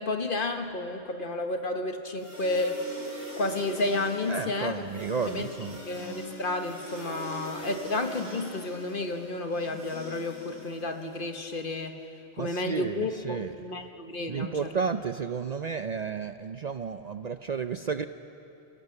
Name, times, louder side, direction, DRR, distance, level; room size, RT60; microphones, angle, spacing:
voice 1, 0.0-2.8 3.4-4.8 5.3-5.5 5.8-12.0 12.4-14.7, left 2 dB, 55° left, 5 dB, 1.4 m, -31 dB
sound 1, 2.2-11.3, right 1 dB, 15° right, 4.5 m, -42 dB
voice 2, 4.3-5.8 12.4-13.5 14.3-18.0, right 6 dB, 50° right, 9 dB, 0.6 m, -32 dB
28.5 x 16.5 x 6.6 m, 2.8 s
omnidirectional pair, 1.1 m